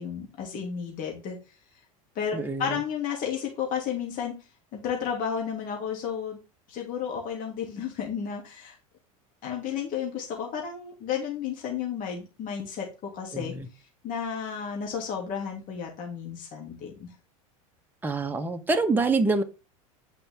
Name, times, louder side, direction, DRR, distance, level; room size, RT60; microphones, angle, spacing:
voice 1, 0.0-1.4 2.1-4.3 4.7-6.4 6.7-8.8 9.4-13.5 14.0-17.1, left 7 dB, 50° left, 0 dB, 2.8 m, -32 dB
voice 2, 2.3-2.8 13.3-13.7 18.0-19.4, right 3 dB, 10° right, 4 dB, 1.2 m, -26 dB
8.7 x 5.7 x 3.6 m, 0.30 s
hypercardioid pair, 100°, 18 cm